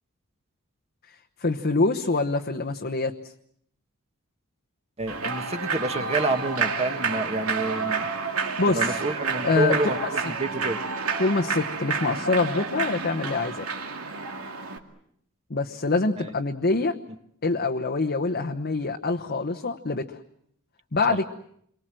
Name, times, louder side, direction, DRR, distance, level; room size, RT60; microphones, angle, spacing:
voice 1, 1.4-3.1 8.6-9.0 9.4-9.9 10.2-10.3 11.2-13.7 15.5-17.0 17.4-20.2 20.9-21.3, left 3 dB, 50° left, 2 dB, 1.1 m, -25 dB
voice 2, 5.0-8.1 8.7-10.8 16.2-16.3 21.1-21.2, right 2 dB, 30° right, 7 dB, 1.9 m, -28 dB
Human voice / Clapping / Cheering, 5.1-14.8, right 5 dB, 85° right, 2.4 m, -29 dB
28.5 x 23.5 x 7.7 m, 0.71 s
head